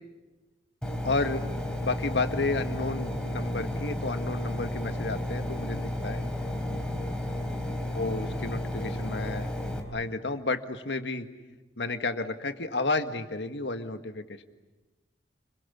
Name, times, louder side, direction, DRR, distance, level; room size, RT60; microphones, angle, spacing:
Engine, 0.8-9.8, left 1 dB, 5° left, 3.7 m, -32 dB
voice 1, 1.0-1.4 1.8-6.2 7.9-9.5 9.9-11.3 11.8-14.4, left 3 dB, 80° left, 8 dB, 1.8 m, -31 dB
30.0 x 23.0 x 8.5 m, 1.2 s
head